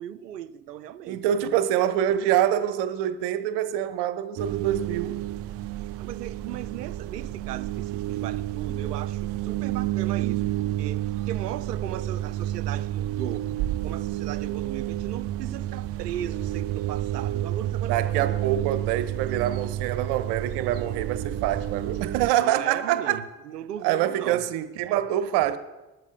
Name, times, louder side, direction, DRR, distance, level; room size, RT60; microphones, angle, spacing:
voice 1, 0.0-1.3 6.0-13.5 13.8-18.3 22.4-24.4, right 11 dB, 80° right, 0.6 m, -37 dB
voice 2, 1.1-5.2 17.9-23.2 23.8-25.6, right 11 dB, 55° right, 0.9 m, -25 dB
sound 1, 4.4-22.3, right 13 dB, 35° right, 0.4 m, -30 dB
20.5 x 12.5 x 2.3 m
figure-of-eight pair, 50°, 47 cm